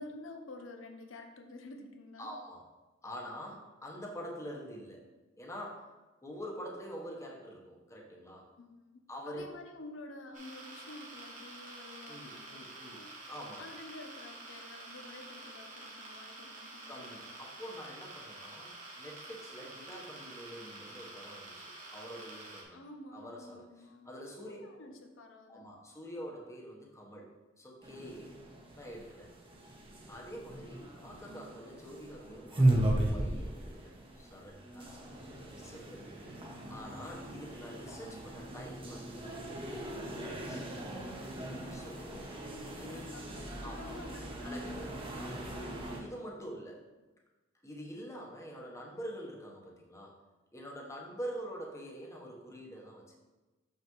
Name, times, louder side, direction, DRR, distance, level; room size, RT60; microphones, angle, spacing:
voice 1, 0.0-2.3 8.6-13.3 13.6-17.3 22.7-25.7 30.6-31.0 34.8-35.6 42.1-45.0, left 2 dB, 90° left, 4 dB, 0.8 m, -50 dB
voice 2, 2.2-2.6 3.0-5.1 5.4-5.9 6.2-8.5 9.1-9.5 12.1-13.0 13.3-13.6 16.9-22.8 23.1-23.6 24.0-24.6 25.5-27.3 27.6-28.4 28.7-29.3 30.1-34.9 35.6-36.1 36.7-40.7 41.7-42.3 42.8-43.0 43.6-43.9 44.4-44.9 45.2-45.5 45.9-46.8 47.6-50.2 50.5-53.1, equal, 15° left, -2 dB, 1.1 m, -46 dB
sound 1, 10.3-22.6, right 2 dB, 45° right, 1.4 m, -48 dB
sound 2, 27.8-46.0, right 1 dB, 30° right, 0.9 m, -37 dB
6.5 x 5.7 x 3.1 m, 1.2 s
head